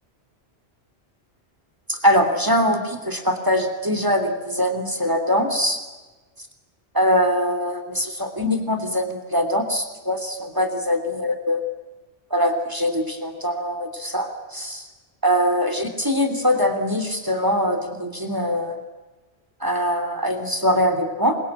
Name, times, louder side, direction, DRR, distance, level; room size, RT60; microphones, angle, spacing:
voice 1, 1.9-5.8 6.9-11.6 12.3-14.8 15.2-18.8 19.6-21.4, equal, 20° right, 7 dB, 3.1 m, -22 dB
27.5 x 22.5 x 8.9 m, 1.2 s
omnidirectional pair, 1.1 m